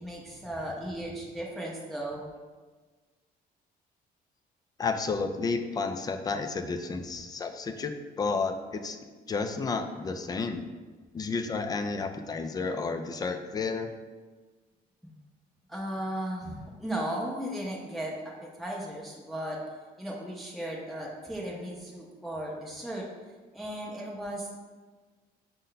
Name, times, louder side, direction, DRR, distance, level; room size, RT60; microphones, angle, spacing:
voice 1, 0.0-2.3 15.7-19.6 20.0-23.0 23.5-24.6, right 1 dB, ahead, -4 dB, 0.7 m, -36 dB
voice 2, 4.8-9.0 9.3-10.6 11.1-13.9, left 4 dB, 25° left, 7 dB, 0.3 m, -31 dB
5.3 x 2.2 x 3.9 m, 1.4 s
cardioid pair, 110°, 17 cm